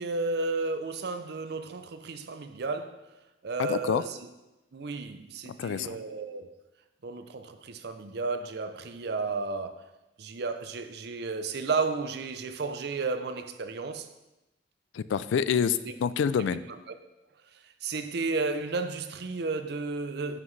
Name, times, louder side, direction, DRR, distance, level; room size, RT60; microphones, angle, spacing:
voice 1, 0.0-3.1 3.4-4.3 4.7-6.6 7.0-9.9 10.2-14.1 15.8-15.9 16.4-17.0 17.8-20.4, right 3 dB, 60° right, 0.6 m, -33 dB
voice 2, 3.6-4.0 5.5-5.9 14.9-16.6, left 7 dB, 85° left, 0.3 m, -27 dB
9.5 x 5.8 x 3.2 m
head